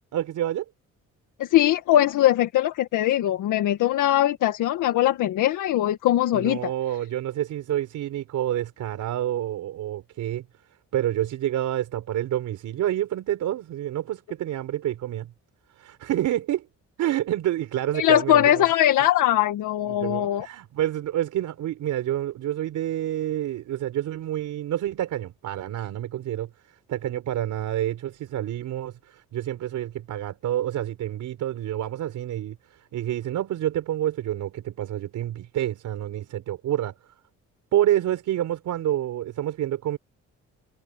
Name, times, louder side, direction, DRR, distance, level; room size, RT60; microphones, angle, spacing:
voice 1, 0.1-0.6 6.3-10.4 10.9-15.3 15.8-16.6 17.0-18.7 19.9-26.5 26.9-32.6 32.9-36.9 37.7-40.0, right 12 dB, 80° right, 4.1 m, -28 dB
voice 2, 1.4-6.7 17.9-20.5, left 12 dB, 85° left, 1.8 m, -21 dB
cardioid pair, 90°, 30 cm